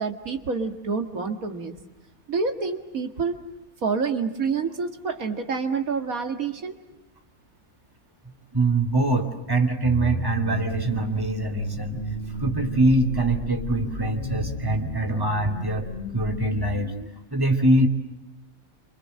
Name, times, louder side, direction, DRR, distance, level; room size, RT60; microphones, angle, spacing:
voice 1, 0.0-1.8 2.3-3.4 3.8-6.8, right 5 dB, 80° right, 5 dB, 2.4 m, -27 dB
voice 2, 8.5-12.0 12.3-15.9 16.1-16.9 17.3-17.9, right 2 dB, 15° right, 4 dB, 2.7 m, -23 dB
sound 1, 9.8-17.1, equal, 40° left, 2.0 m, -33 dB
28.5 x 25.5 x 7.7 m, 0.92 s
omnidirectional pair, 1.4 m